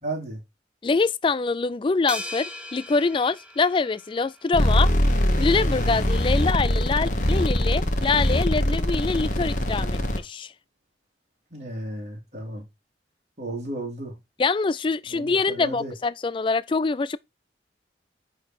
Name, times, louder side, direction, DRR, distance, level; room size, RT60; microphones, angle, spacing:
voice 1, 0.0-0.4 11.5-12.6 13.4-14.1 15.1-15.9, right 1 dB, 40° right, 3.0 m, -34 dB
voice 2, 0.8-4.9 5.4-10.5 14.4-17.2, left 4 dB, 30° left, 0.3 m, -24 dB
sound 1, 2.1-4.6, equal, 5° right, 1.0 m, -38 dB
sound 2, 4.5-10.2, equal, 45° left, 1.2 m, -22 dB
9.4 x 4.0 x 4.3 m
head